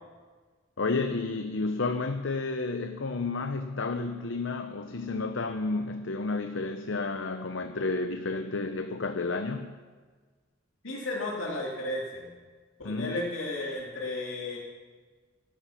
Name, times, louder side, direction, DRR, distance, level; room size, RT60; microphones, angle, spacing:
voice 1, 0.8-9.7 12.8-13.2, left 3 dB, 70° left, 7 dB, 0.7 m, -31 dB
voice 2, 10.8-12.3 12.8-14.6, left 2 dB, 90° left, -4 dB, 2.7 m, -33 dB
14.5 x 13.0 x 5.8 m, 1.5 s
head